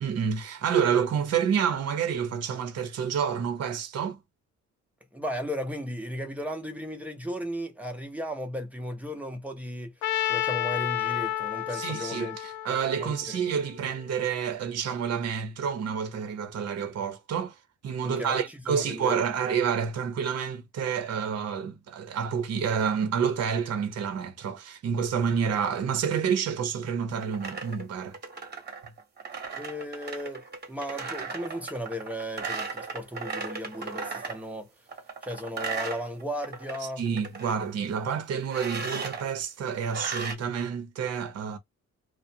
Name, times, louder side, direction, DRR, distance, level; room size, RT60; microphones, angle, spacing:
voice 1, 0.0-4.2 11.7-17.6 17.8-28.2 37.0-41.6, right 7 dB, 55° right, 0.8 m, -29 dB
voice 2, 5.1-9.9 10.2-12.4 13.0-13.4 18.0-19.3 29.6-30.4 30.7-34.7 35.2-37.0, equal, 5° right, 0.8 m, -35 dB
Trumpet, 10.0-14.1, left 13 dB, 80° left, 0.5 m, -31 dB
sound 1, 27.1-34.4 34.9-36.8 37.1-37.6 38.5-39.2 39.9-40.4, right 4 dB, 35° right, 1.0 m, -36 dB
2.4 x 2.1 x 2.7 m
cardioid pair, 90°, 30 cm